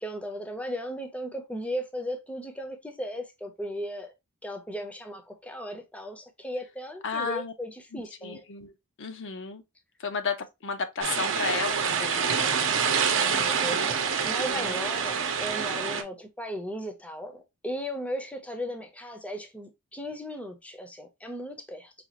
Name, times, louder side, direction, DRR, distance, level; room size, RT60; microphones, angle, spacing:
voice 1, 0.0-4.1 4.4-8.4 12.9-21.9, equal, 5° left, 0.6 m, -36 dB
voice 2, 7.0-7.5 7.9-9.6 10.0-12.5 14.5-14.9, left 5 dB, 55° left, 0.6 m, -33 dB
sound 1, 11.0-16.0, right 6 dB, 60° right, 0.7 m, -26 dB
5.0 x 2.4 x 2.8 m
head